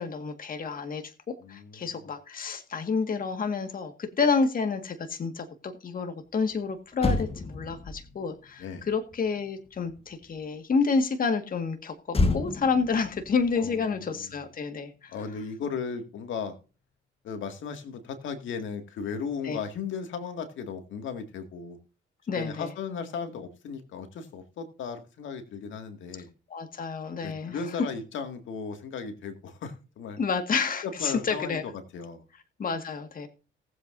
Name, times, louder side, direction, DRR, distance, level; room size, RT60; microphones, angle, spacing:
voice 1, 0.0-15.2 19.4-19.6 22.3-22.7 26.5-27.8 30.2-31.6 32.6-33.3, left 5 dB, 45° left, 7 dB, 1.8 m, -29 dB
voice 2, 1.4-1.9 8.6-8.8 13.6-14.3 15.1-16.6 17.2-21.8 22.3-26.3 27.2-30.2 30.8-32.2, left 6 dB, 75° left, 7 dB, 2.1 m, -36 dB
Motor vehicle (road), 6.5-6.6 6.9-10.5 12.1-14.7 15.0-15.2, left 3 dB, 30° left, 1.6 m, -32 dB
19.0 x 8.1 x 2.6 m, 0.35 s
cardioid pair, 90°, 20 cm